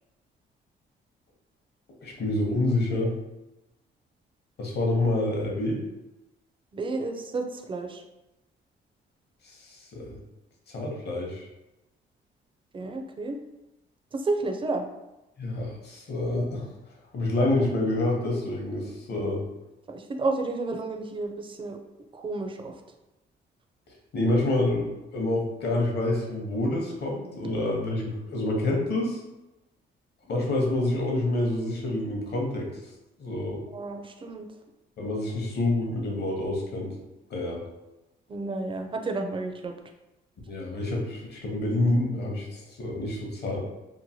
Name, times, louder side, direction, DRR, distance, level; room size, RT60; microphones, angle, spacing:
voice 1, 2.0-3.1 4.6-5.8 9.4-10.2 10.7-11.5 15.4-16.6 17.1-19.4 24.1-24.9 25.1-29.2 30.3-32.7 33.2-33.6 35.0-36.9 37.3-37.6 40.5-43.6, left 2 dB, 55° left, -1 dB, 0.8 m, -27 dB
voice 2, 6.7-8.0 12.7-13.4 14.1-14.9 19.1-19.3 19.9-21.8 22.1-22.7 33.7-34.5 38.3-39.7, right 3 dB, 25° right, 4 dB, 0.4 m, -31 dB
3.0 x 2.1 x 2.7 m, 0.98 s
cardioid pair, 90°, 20 cm